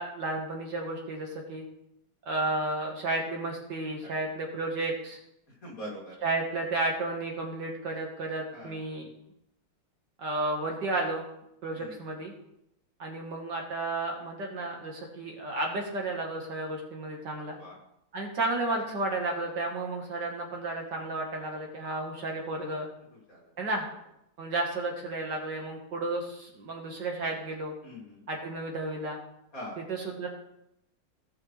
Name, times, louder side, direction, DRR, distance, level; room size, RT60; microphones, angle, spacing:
voice 1, 0.0-1.7 2.3-5.2 6.2-9.1 10.2-11.3 11.6-12.3 13.0-17.6 18.1-22.9 23.6-23.9 24.4-27.7 28.3-29.2 29.9-30.3, right 2 dB, 55° right, 0 dB, 1.9 m, -32 dB
voice 2, 5.6-6.1 8.5-8.8 11.7-12.0 17.6-17.8 23.1-23.5 27.8-28.2 29.5-29.8, equal, 40° left, -3 dB, 3.2 m, -43 dB
17.0 x 5.8 x 3.3 m, 0.80 s
omnidirectional pair, 2.3 m